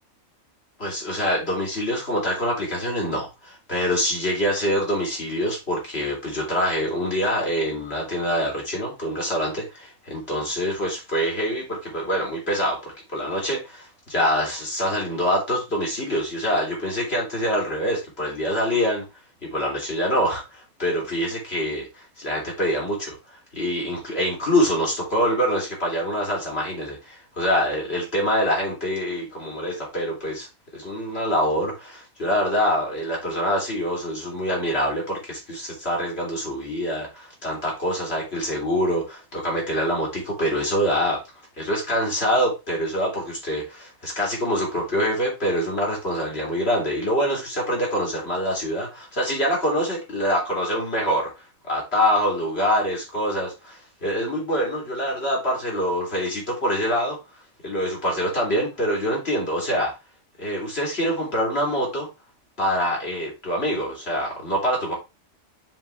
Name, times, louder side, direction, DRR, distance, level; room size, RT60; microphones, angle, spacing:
voice 1, 0.8-19.0 19.4-23.1 23.5-30.5 30.7-41.2 41.6-51.3 51.6-57.2 57.6-59.9 60.4-62.1 62.6-64.9, equal, 45° left, 3.7 m, -25 dB
7.4 x 4.8 x 3.5 m
omnidirectional pair, 1.4 m